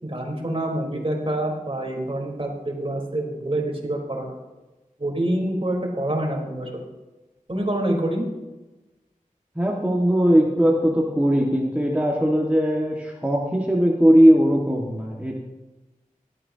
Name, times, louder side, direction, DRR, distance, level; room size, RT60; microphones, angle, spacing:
voice 1, 0.0-4.3 5.0-6.8 7.5-8.3, right 1 dB, 40° right, -1 dB, 3.9 m, -26 dB
voice 2, 9.6-15.3, equal, 10° right, -2 dB, 1.8 m, -19 dB
18.0 x 13.0 x 2.9 m, 1.1 s
wide cardioid pair, 50°, 14 cm